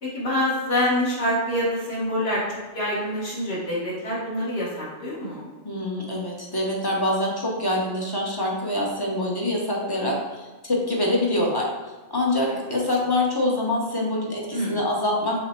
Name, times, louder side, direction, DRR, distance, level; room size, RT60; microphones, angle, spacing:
voice 1, 0.0-5.5 14.5-14.8, left 1 dB, 60° left, -7 dB, 1.5 m, -26 dB
voice 2, 5.6-11.7 12.1-15.4, left 1 dB, 25° left, -2 dB, 0.7 m, -25 dB
5.9 x 2.1 x 4.3 m, 1.2 s
omnidirectional pair, 1.2 m